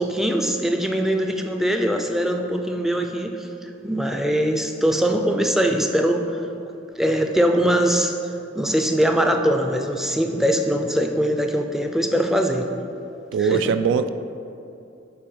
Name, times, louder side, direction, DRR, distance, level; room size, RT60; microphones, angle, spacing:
voice 1, 0.0-3.5 3.8-6.4 7.0-8.1 8.5-12.7 13.4-13.6, equal, ahead, 4 dB, 0.4 m, -22 dB
voice 2, 13.3-14.1, right 6 dB, 65° right, 10 dB, 0.3 m, -21 dB
9.5 x 3.4 x 6.2 m, 2.7 s
head